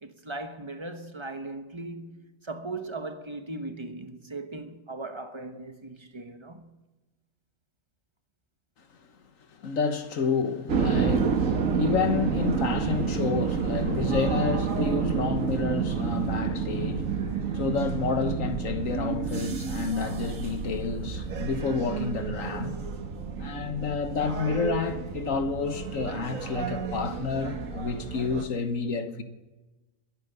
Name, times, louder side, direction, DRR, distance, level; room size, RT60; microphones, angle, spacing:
voice 1, 0.0-6.7, right 2 dB, 25° right, 1.0 m, -38 dB
voice 2, 9.6-22.8 23.4-29.2, left 5 dB, 75° left, 1.6 m, -29 dB
sound 1, 10.7-28.4, right 6 dB, 75° right, 1.7 m, -30 dB
21.5 x 9.2 x 6.8 m
omnidirectional pair, 1.4 m